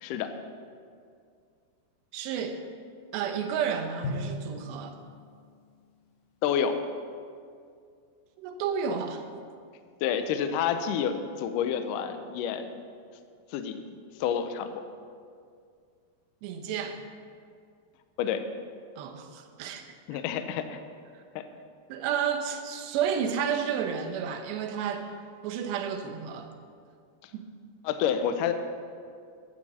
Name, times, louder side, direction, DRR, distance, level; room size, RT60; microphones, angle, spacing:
voice 1, 0.0-0.3 6.4-6.8 10.0-12.7 13.5-13.8 14.2-14.9 18.2-18.4 20.1-20.8 21.4-21.5 27.8-28.5, left 8 dB, 85° left, 8 dB, 1.8 m, -29 dB
voice 2, 2.1-2.6 3.1-5.0 8.4-9.2 16.4-17.0 19.0-19.8 21.9-25.1 25.4-26.5 27.3-27.5, right 7 dB, 85° right, 6 dB, 3.2 m, -31 dB
Drum, 4.0-5.8, left 2 dB, 70° left, 2.1 m, -37 dB
15.0 x 12.0 x 4.3 m, 2.2 s
omnidirectional pair, 4.8 m